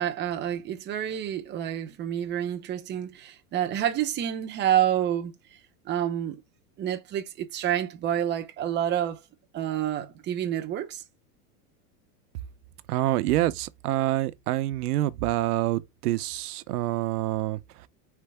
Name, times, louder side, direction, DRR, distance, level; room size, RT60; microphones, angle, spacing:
voice 1, 0.0-5.3 5.8-6.4 6.8-9.2 9.5-11.0, right 10 dB, 25° right, 0.7 m, -28 dB
voice 2, 12.9-17.9, right 15 dB, 80° right, 0.7 m, -27 dB
4.6 x 3.3 x 3.3 m
supercardioid pair, 135°, 45 cm